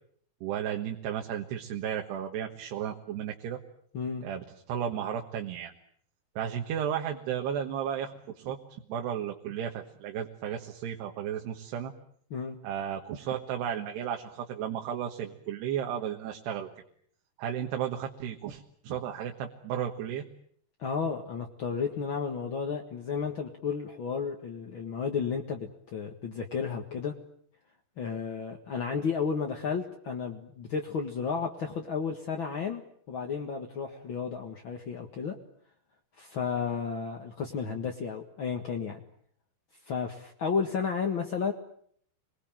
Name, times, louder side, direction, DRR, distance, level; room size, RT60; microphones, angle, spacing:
voice 1, 0.4-3.6 4.2-5.7 6.4-11.9 12.6-16.7 17.4-20.2, right 9 dB, 80° right, 3 dB, 3.6 m, -34 dB
voice 2, 20.8-27.1 28.0-32.8 33.1-35.4 36.2-39.0 39.9-41.5, left 6 dB, 50° left, 2 dB, 1.6 m, -32 dB
28.0 x 21.5 x 9.1 m, 0.64 s
omnidirectional pair, 4.8 m